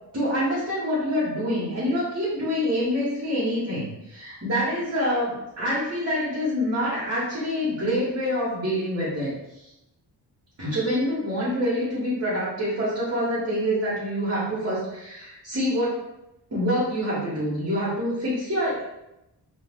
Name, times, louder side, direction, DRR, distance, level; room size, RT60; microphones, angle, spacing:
voice 1, 0.1-9.3 10.6-16.0 16.5-18.8, equal, 35° right, -9 dB, 1.0 m, -26 dB
2.4 x 2.3 x 3.4 m, 0.89 s
wide cardioid pair, 165°, 42 cm